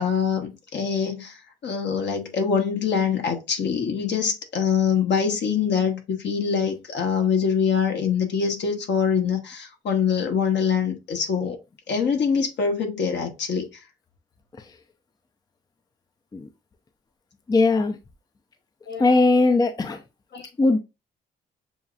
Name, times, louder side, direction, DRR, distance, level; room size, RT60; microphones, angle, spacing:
voice 1, 0.0-11.6 11.9-13.7 18.9-19.1 20.3-20.5, left 6 dB, 60° left, 1.2 m, -24 dB
voice 2, 17.5-17.9 19.0-20.0 20.6-20.8, left 3 dB, 20° left, 0.5 m, -19 dB
6.9 x 2.3 x 2.4 m
cardioid pair, 90°, 20 cm